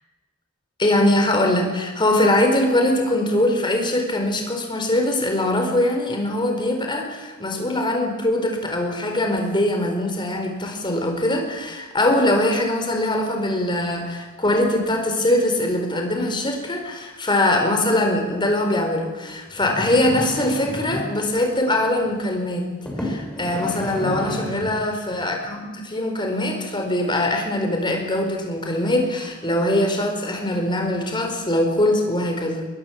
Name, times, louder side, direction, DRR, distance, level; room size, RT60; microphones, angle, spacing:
voice 1, 0.8-22.7 23.0-32.7, left 1 dB, 25° left, 3 dB, 4.5 m, -22 dB
sound 1, 19.5-21.2 22.0-22.2 22.9-24.8 25.5-25.6, equal, 5° left, 6.1 m, -31 dB
22.5 x 22.0 x 7.4 m, 1.2 s
head